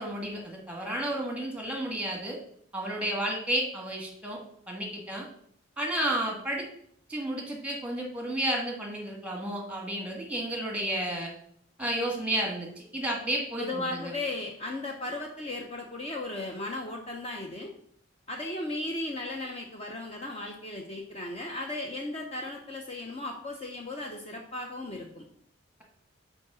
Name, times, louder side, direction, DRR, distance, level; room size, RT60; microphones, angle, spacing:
voice 1, 0.0-2.4 2.7-4.4 4.7-5.3 5.8-6.6 7.1-11.3 11.8-14.1, right 1 dB, 5° right, 1 dB, 1.4 m, -32 dB
voice 2, 13.6-17.7 18.3-25.2, left 2 dB, 30° left, 1 dB, 0.6 m, -36 dB
5.2 x 4.8 x 6.0 m, 0.66 s
head